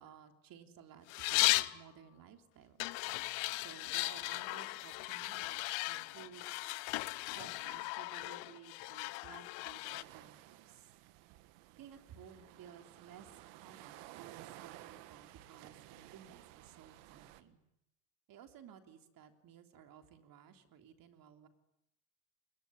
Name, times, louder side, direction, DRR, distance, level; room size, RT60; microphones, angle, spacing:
voice 1, 0.0-2.9 3.5-6.5 7.3-10.9 11.8-17.6 18.3-21.5, right 8 dB, 55° right, 6 dB, 3.5 m, -56 dB
sound 1, 1.1-1.8 2.8-10.0, left 23 dB, 80° left, 1.0 m, -36 dB
sound 2, 9.8-17.4, right 15 dB, 80° right, 1.8 m, -55 dB
25.5 x 22.0 x 9.9 m, 0.84 s
cardioid pair, 115°, 42 cm